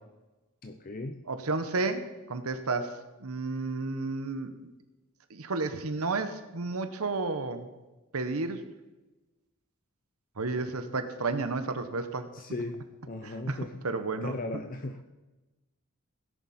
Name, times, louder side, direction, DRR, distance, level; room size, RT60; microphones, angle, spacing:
voice 1, 0.6-1.2 12.3-13.8 14.2-15.0, left 2 dB, 40° left, 7 dB, 0.6 m, -37 dB
voice 2, 1.3-4.5 5.3-7.7 8.1-8.6 10.4-12.3 13.2-14.4, right 3 dB, 75° right, 9 dB, 1.0 m, -32 dB
17.0 x 11.0 x 4.3 m, 1.1 s
head